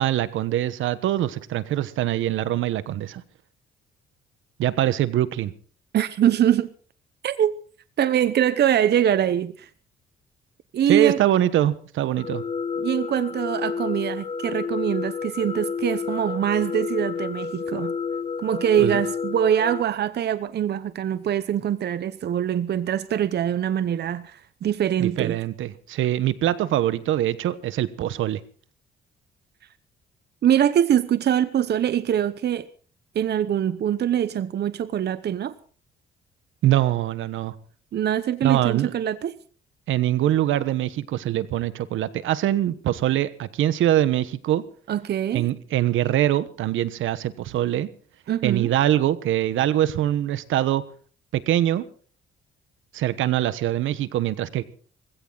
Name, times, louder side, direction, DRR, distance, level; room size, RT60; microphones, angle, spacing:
voice 1, 0.0-3.2 4.6-5.5 10.9-12.4 18.8-19.0 25.0-28.4 36.6-37.5 38.4-38.9 39.9-44.6 45.3-47.9 48.4-50.8 51.3-51.8 52.9-54.6, right 13 dB, 80° right, 1.2 m, -23 dB
voice 2, 5.9-6.7 7.2-7.5 8.0-9.7 10.7-11.2 12.8-17.9 18.4-25.4 30.4-32.7 33.1-35.5 37.9-39.3 44.9-45.5 48.3-48.7, right 10 dB, 55° right, 0.9 m, -23 dB
sound 1, 12.2-19.8, left 5 dB, 30° left, 0.9 m, -30 dB
19.5 x 16.5 x 4.0 m
cardioid pair, 90°, 20 cm